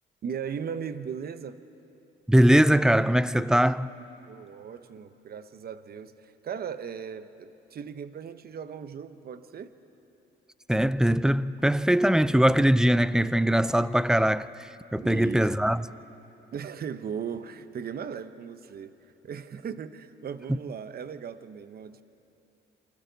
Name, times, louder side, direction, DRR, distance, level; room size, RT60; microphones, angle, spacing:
voice 1, 0.2-1.6 4.3-9.7 15.0-15.5 16.5-18.9 19.2-22.0, right 7 dB, 50° right, 0.9 m, -37 dB
voice 2, 2.3-3.9 10.7-15.8, equal, 5° right, 0.5 m, -21 dB
28.0 x 24.0 x 4.0 m
cardioid pair, 90°, 20 cm